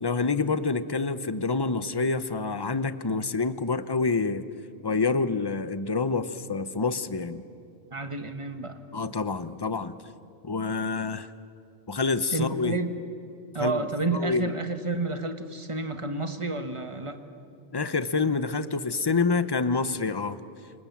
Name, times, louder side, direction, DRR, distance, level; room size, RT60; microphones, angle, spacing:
voice 1, 0.0-4.4 4.8-7.4 8.9-10.0 10.4-11.3 11.9-12.7 13.6-13.8 14.1-14.5 17.7-20.4, left 4 dB, 25° left, 13 dB, 0.7 m, -27 dB
voice 2, 7.9-8.8 12.3-13.0 13.5-17.2, right 3 dB, 25° right, 7 dB, 1.4 m, -30 dB
29.5 x 26.0 x 7.4 m, 2.5 s
omnidirectional pair, 1.2 m